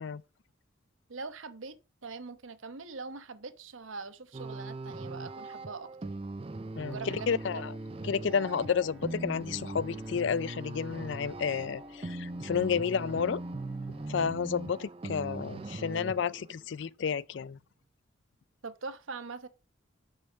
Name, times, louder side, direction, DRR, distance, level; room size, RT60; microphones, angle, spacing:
voice 1, 1.1-6.1 6.8-7.6 18.6-19.5, right 4 dB, 80° right, 1.0 m, -43 dB
sound 1, 4.3-16.7, right 2 dB, 30° right, 0.4 m, -40 dB
voice 2, 6.8-7.7 8.0-13.4 14.1-17.6, left 6 dB, 65° left, 0.4 m, -31 dB
Bowed string instrument, 6.8-14.3, left 2 dB, ahead, 1.2 m, -51 dB
6.9 x 5.6 x 6.4 m
head